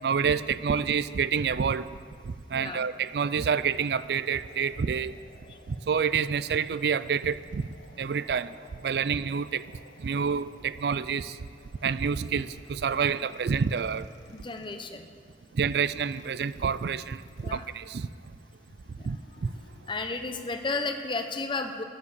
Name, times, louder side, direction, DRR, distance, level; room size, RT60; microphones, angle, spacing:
voice 1, 0.0-1.9 2.2-5.1 5.7-7.7 8.0-8.5 8.8-9.6 10.0-11.4 11.8-14.1 15.5-18.1 19.0-19.2 19.4-19.5, right 6 dB, 65° right, 16 dB, 0.4 m, -28 dB
voice 2, 2.5-2.9 5.5-5.6 13.0-13.1 14.3-15.1 17.4-17.7 19.0-19.2 19.9-21.8, left 3 dB, 30° left, 7 dB, 0.9 m, -33 dB
sound 1, 3.1-20.7, left 2 dB, 80° left, 1.3 m, -56 dB
13.0 x 9.7 x 7.0 m, 2.3 s
head